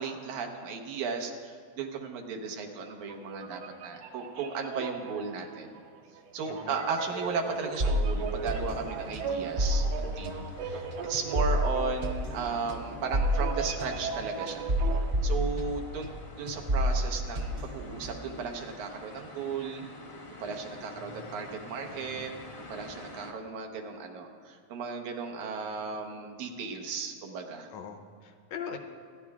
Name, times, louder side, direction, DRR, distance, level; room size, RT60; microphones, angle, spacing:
voice 1, 0.0-5.7 6.3-14.7 15.2-16.1 16.4-19.9 20.4-22.3 22.6-27.7, right 5 dB, 90° right, 3 dB, 2.5 m, -35 dB
sound 1, 3.0-15.1, right 6 dB, 70° right, 1.8 m, -39 dB
sound 2, 6.9-23.3, left 2 dB, 45° left, 0.8 m, -49 dB
sound 3, 7.8-16.2 16.5-18.4, equal, 40° right, 1.0 m, -30 dB
voice 2, 20.9-21.5 21.9-22.3 27.7-28.8, left 6 dB, 75° left, 5 dB, 1.9 m, -42 dB
25.5 x 11.0 x 2.4 m, 2.1 s
omnidirectional pair, 3.3 m